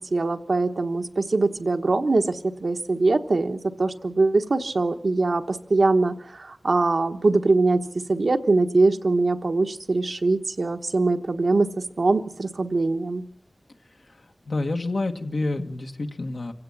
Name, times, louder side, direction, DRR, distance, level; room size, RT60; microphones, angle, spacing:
voice 1, 0.0-7.8 8.1-11.7 12.0-13.2, right 3 dB, 85° right, 6 dB, 1.2 m, -22 dB
voice 2, 14.4-16.5, left 2 dB, 85° left, 3 dB, 1.8 m, -28 dB
26.0 x 16.5 x 7.3 m, 0.64 s
wide cardioid pair, 55°, 0 cm